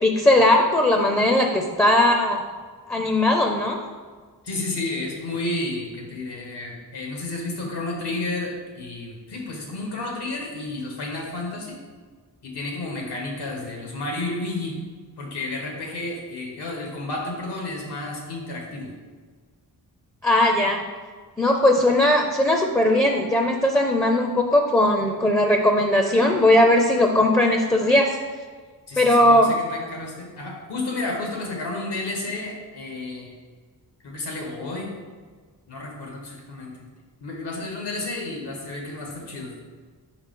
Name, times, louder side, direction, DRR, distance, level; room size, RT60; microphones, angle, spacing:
voice 1, 0.0-2.4 2.9-3.8 20.2-20.8 21.4-28.1 29.0-29.5, left 1 dB, 5° left, 2 dB, 0.5 m, -19 dB
voice 2, 4.4-11.8 12.4-14.7 15.2-18.9 28.9-33.3 34.0-35.0 35.7-36.7 37.2-39.5, left 2 dB, 85° left, 0 dB, 1.5 m, -31 dB
5.4 x 4.9 x 3.7 m, 1.5 s
wide cardioid pair, 95°, 39 cm